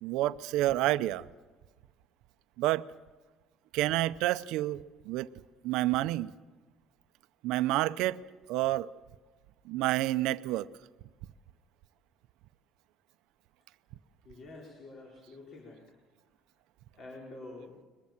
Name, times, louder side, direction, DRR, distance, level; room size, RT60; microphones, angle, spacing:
voice 1, 0.0-1.2 2.6-2.8 3.7-5.3 5.6-6.3 7.4-8.2 8.5-8.9 9.7-10.7, right 16 dB, 85° right, 0.7 m, -29 dB
voice 2, 14.2-15.8 16.9-17.7, left 2 dB, 50° left, 4.5 m, -47 dB
22.5 x 21.5 x 7.4 m
cardioid pair, 140°, 0 cm